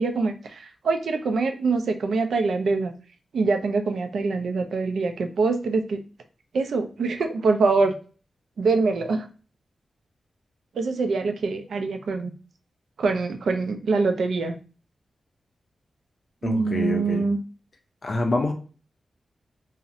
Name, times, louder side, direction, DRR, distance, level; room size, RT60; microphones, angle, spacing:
voice 1, 0.0-2.9 3.3-6.0 6.5-8.0 8.6-9.3 10.8-12.3 13.0-14.5 16.4-17.4, right 4 dB, 80° right, 6 dB, 0.3 m, -24 dB
voice 2, 16.4-17.2 18.0-18.5, left 2 dB, 45° left, 3 dB, 0.4 m, -26 dB
2.4 x 2.0 x 2.7 m, 0.37 s
wide cardioid pair, 130°, 0 cm